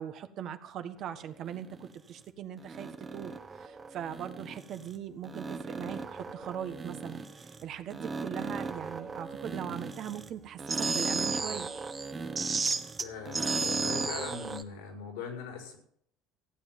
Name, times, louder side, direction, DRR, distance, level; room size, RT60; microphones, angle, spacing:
voice 1, 0.0-11.7, right 9 dB, 55° right, 9 dB, 1.5 m, -40 dB
sound 1, 1.5-1.9 2.6-4.9 5.2-7.6 7.9-10.3 10.6-14.6, right 4 dB, 25° right, 1.4 m, -35 dB
voice 2, 13.0-15.8, left 5 dB, 85° left, 2 dB, 5.2 m, -40 dB
15.5 x 9.2 x 7.6 m, 0.67 s
supercardioid pair, 90°, 0 cm